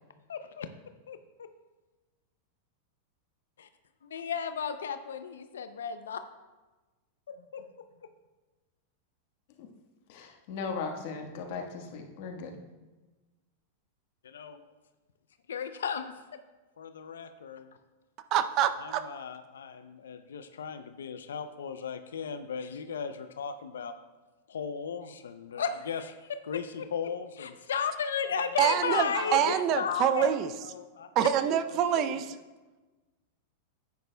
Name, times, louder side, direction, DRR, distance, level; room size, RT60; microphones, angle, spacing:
voice 1, 0.3-0.7 1.1-1.2 3.6-3.7 4.0-6.2 7.3-7.7 14.2-14.7 15.5-16.2 16.8-17.8 18.8-23.9 24.5-30.3 30.6-31.3 31.7-32.2, left 6 dB, 90° left, 10 dB, 0.5 m, -35 dB
voice 2, 10.1-12.6, left 5 dB, 60° left, 3 dB, 1.4 m, -37 dB
voice 3, 18.3-19.0 28.6-30.5 31.2-32.2, right 9 dB, 45° right, 11 dB, 0.5 m, -26 dB
10.0 x 9.4 x 2.2 m, 1.2 s
hypercardioid pair, 120°, 0 cm